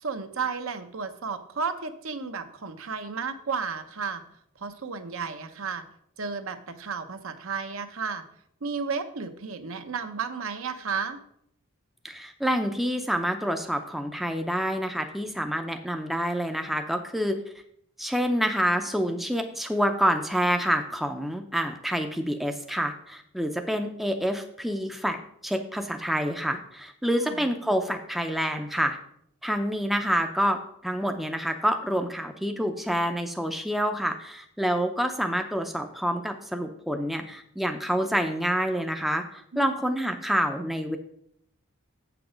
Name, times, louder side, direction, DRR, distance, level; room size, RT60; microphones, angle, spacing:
voice 1, 0.0-4.2 4.6-5.8 6.2-8.2 8.6-11.2 27.1-27.5 39.5-39.7, right 5 dB, 65° right, 8 dB, 0.7 m, -33 dB
voice 2, 12.0-17.4 18.0-25.2 25.4-29.0 29.4-41.0, equal, ahead, 5 dB, 0.5 m, -27 dB
7.8 x 6.0 x 5.0 m, 0.69 s
head